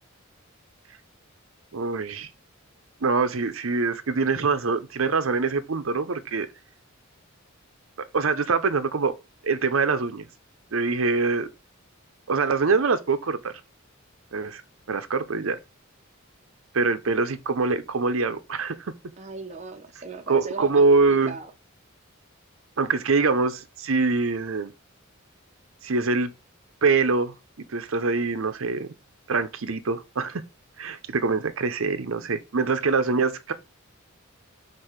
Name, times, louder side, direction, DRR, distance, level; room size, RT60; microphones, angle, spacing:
voice 1, 1.7-2.3 3.0-6.5 8.1-9.1 9.4-10.3 10.7-11.5 12.3-13.6 14.3-14.6 14.9-15.6 16.7-18.9 20.3-21.4 22.8-24.7 25.8-26.3 26.8-27.3 27.7-28.9 29.3-30.4 30.8-33.5, right 4 dB, 70° right, 0.7 m, -24 dB
voice 2, 19.2-21.5, right 4 dB, 35° right, 0.8 m, -38 dB
4.5 x 4.1 x 5.1 m
head